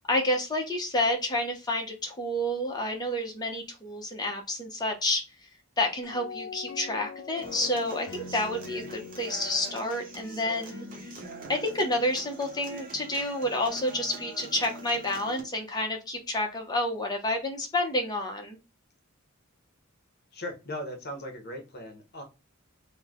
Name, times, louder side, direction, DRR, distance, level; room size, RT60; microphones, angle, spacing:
voice 1, 0.1-5.2 5.8-10.9 11.5-18.6, left 1 dB, 20° left, 2 dB, 0.7 m, -29 dB
sound 1, 6.0-11.2, left 6 dB, 80° left, 0.5 m, -43 dB
Human voice / Acoustic guitar, 7.4-15.4, right 2 dB, 40° right, 0.7 m, -44 dB
voice 2, 20.3-22.2, left 1 dB, 50° left, 3 dB, 0.9 m, -38 dB
3.1 x 2.1 x 3.5 m, 0.28 s
head